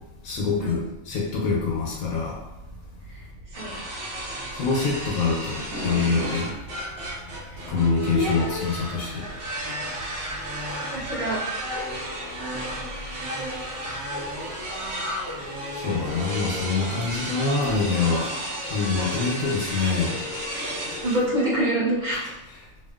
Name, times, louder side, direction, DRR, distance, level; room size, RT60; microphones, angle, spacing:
voice 1, 0.2-2.4 2.7-2.8 4.5-6.5 7.6-9.2 15.7-20.1, left 4 dB, 85° left, -2 dB, 1.0 m, -25 dB
sound 1, 3.5-21.2, equal, 85° right, 1.1 m, -33 dB
voice 2, 8.1-8.7 10.9-11.4 21.0-22.2, right 1 dB, 40° right, -8 dB, 0.8 m, -26 dB
2.7 x 2.3 x 2.3 m, 0.99 s
omnidirectional pair, 1.4 m